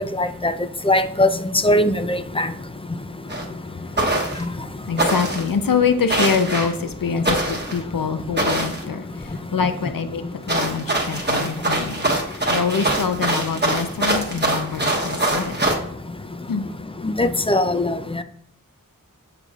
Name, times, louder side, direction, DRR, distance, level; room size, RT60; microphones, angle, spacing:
voice 1, 0.2-0.5 0.9-1.3 1.6-2.5 17.0-18.0, left 1 dB, 15° left, 10 dB, 0.3 m, -19 dB
sound 1, 3.3-3.4 4.0-4.4 5.0-5.5 6.1-6.7 7.2-7.8 8.4-8.8 10.5-15.8, right 1 dB, 30° right, 1.0 m, -23 dB
voice 2, 4.9-15.6 16.5-16.7, left 6 dB, 80° left, 8 dB, 0.6 m, -25 dB
6.8 x 5.7 x 2.4 m, 0.69 s
wide cardioid pair, 50°, 33 cm